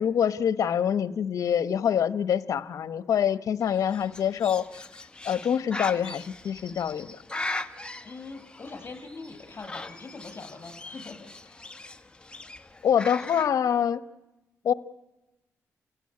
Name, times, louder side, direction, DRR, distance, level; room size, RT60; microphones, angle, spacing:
voice 1, 0.0-4.9 5.2-7.1 12.8-14.0 14.6-14.7, left 8 dB, 75° left, 14 dB, 1.0 m, -25 dB
Bird, 3.6-13.5, left 2 dB, 15° left, 1.3 m, -40 dB
voice 2, 8.0-11.3, left 3 dB, 40° left, 5 dB, 6.8 m, -42 dB
28.5 x 16.5 x 9.8 m, 1.0 s
cardioid pair, 75°, 6 cm